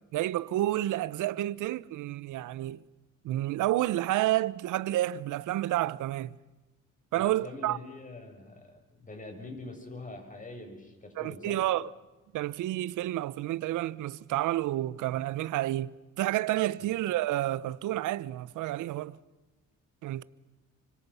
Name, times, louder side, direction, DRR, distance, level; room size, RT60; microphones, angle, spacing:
voice 1, 0.1-2.8 3.2-6.4 7.1-7.8 11.2-11.9 12.3-19.2 20.0-20.2, right 15 dB, 90° right, 0.9 m, -30 dB
voice 2, 7.1-11.6 16.8-16.9, left 2 dB, 25° left, 7.3 m, -44 dB
29.5 x 25.5 x 5.7 m
cardioid pair, 90°, 30 cm